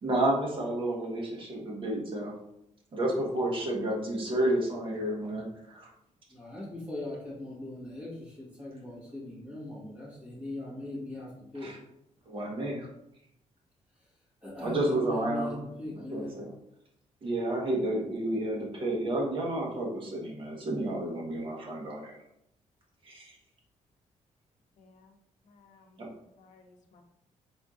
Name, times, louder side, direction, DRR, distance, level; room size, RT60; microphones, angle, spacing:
voice 1, 0.0-2.3 2.9-5.9 11.5-11.8 12.3-12.9 14.6-15.5 15.9-16.5 17.2-22.2 23.0-23.3 26.0-26.1, right 1 dB, 45° right, -2 dB, 1.1 m, -31 dB
voice 2, 6.3-11.7 14.4-16.3, left 1 dB, 10° right, -6 dB, 1.5 m, -40 dB
voice 3, 24.8-25.2 25.4-26.1 26.4-27.0, left 4 dB, 75° left, 3 dB, 0.6 m, -59 dB
4.3 x 3.6 x 2.5 m, 0.79 s
wide cardioid pair, 160°, 13 cm